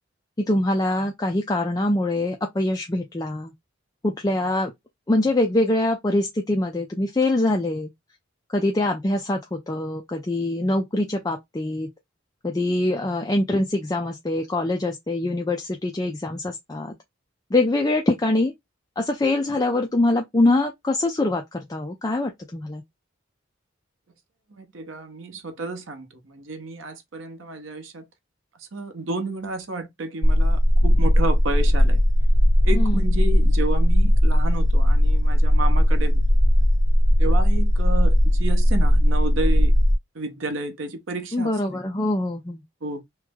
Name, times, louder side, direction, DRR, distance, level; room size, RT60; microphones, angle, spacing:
voice 1, 0.5-3.5 4.0-4.7 5.1-7.9 8.5-11.9 12.4-16.9 17.5-18.5 19.0-22.8 32.7-33.1 41.3-42.6, left 2 dB, 20° left, 0.4 m, -24 dB
voice 2, 24.6-28.0 28.7-32.0 32.6-36.2 37.2-39.7 40.1-41.5 42.8-43.0, right 2 dB, 80° right, 0.8 m, -31 dB
sound 1, 30.2-39.9, equal, 65° left, 1.3 m, -18 dB
3.1 x 2.0 x 3.5 m
head